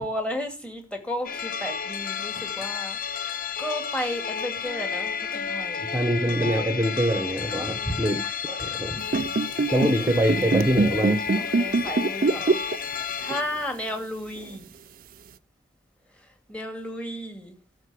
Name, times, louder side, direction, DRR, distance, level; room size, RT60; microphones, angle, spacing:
voice 1, 0.0-5.9 7.6-8.1 9.8-10.2 11.6-12.6 13.2-14.7 16.5-17.6, left 1 dB, 5° left, 4 dB, 2.4 m, -34 dB
sound 1, 1.2-13.4, left 6 dB, 50° left, 0.9 m, -31 dB
voice 2, 5.8-9.0 9.7-11.2, right 1 dB, 15° right, 6 dB, 1.2 m, -24 dB
sound 2, 9.0-13.0 13.3-13.5 14.4-14.5, right 3 dB, 50° right, 0.5 m, -23 dB
13.0 x 4.6 x 8.3 m, 0.33 s
head